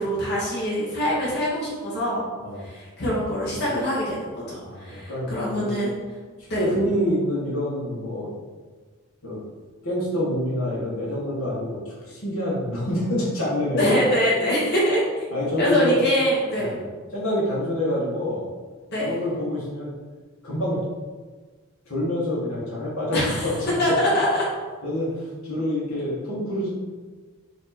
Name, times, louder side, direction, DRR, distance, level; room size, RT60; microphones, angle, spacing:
voice 1, 0.0-2.2 2.6-6.0 6.5-6.6 13.8-15.0 15.6-16.8 18.9-19.2 23.1-23.4 23.8-24.4, equal, 50° left, -6 dB, 1.2 m, -24 dB
voice 2, 4.6-5.3 5.6-5.7 6.6-8.3 9.2-9.4 9.8-14.0 15.3-16.0 16.6-16.8 17.1-18.5 19.0-19.9 20.4-20.8 21.9-23.5 24.8-26.7, left 1 dB, 75° left, -5 dB, 1.3 m, -26 dB
4.3 x 2.8 x 4.2 m, 1.4 s
head